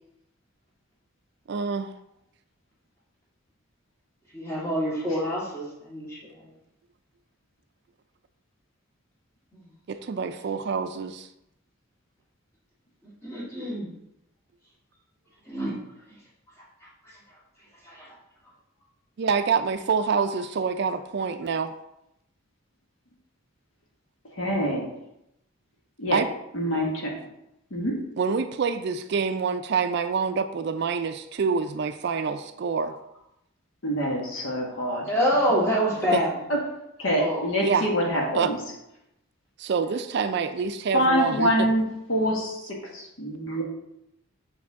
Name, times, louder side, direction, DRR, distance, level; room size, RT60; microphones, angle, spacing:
voice 1, 1.5-1.9 9.9-11.3 19.2-21.7 26.1-26.3 28.2-32.9 36.1-36.2 37.6-37.9 38.3-38.5 39.6-41.7, right 5 dB, 55° right, 9 dB, 0.4 m, -26 dB
voice 2, 4.3-6.4 9.5-9.6 13.2-13.9 15.5-15.8 17.8-18.1 35.1-36.4 37.0-37.5, equal, 15° left, -6 dB, 1.9 m, -26 dB
voice 3, 24.4-24.9 26.0-26.2 26.5-27.2 27.7-28.0 33.8-35.0 36.5-36.6 37.0-38.6 40.9-41.8 42.1-43.6, equal, 70° left, -1 dB, 1.6 m, -25 dB
6.5 x 4.9 x 3.5 m, 0.82 s
head